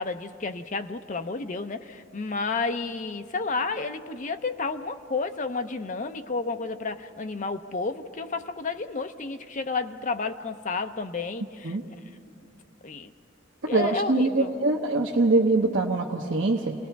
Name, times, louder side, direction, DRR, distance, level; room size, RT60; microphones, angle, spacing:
voice 1, 0.0-11.8 12.8-13.1 13.6-14.7, left 4 dB, 40° left, 8 dB, 0.7 m, -31 dB
voice 2, 13.7-16.7, right 2 dB, 65° right, 0 dB, 1.0 m, -23 dB
29.5 x 19.5 x 4.7 m, 2.5 s
head